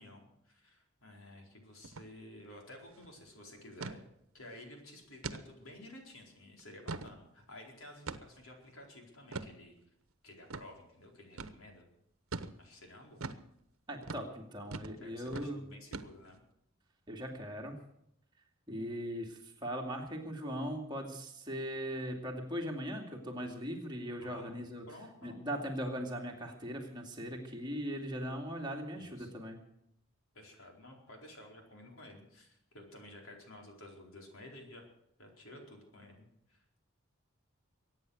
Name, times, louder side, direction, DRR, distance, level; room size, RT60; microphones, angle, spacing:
voice 1, 0.0-4.0 4.3-9.8 10.2-11.9 12.6-13.3 15.0-16.4 24.2-25.4 29.0-29.3 30.3-34.8 35.2-36.2 36.5-36.8, left 1 dB, 80° left, 1 dB, 4.4 m, -53 dB
sound 1, 1.8-2.1 2.4-2.5 2.8-3.1 3.8-4.0 4.5-4.6 5.2-5.4 6.0-6.1 6.6-7.2 8.1-8.4 9.3-9.5 10.5-10.7 11.4-11.6 12.3-12.6 13.2-13.4 14.0-14.3 14.7-15.0 15.3-15.5 15.9-16.4, right 3 dB, 85° right, 1.0 m, -41 dB
voice 2, 13.9-15.6 17.1-17.8 18.7-24.8 25.2-29.6, equal, 20° right, 1 dB, 2.5 m, -39 dB
23.0 x 9.5 x 6.5 m, 0.76 s
head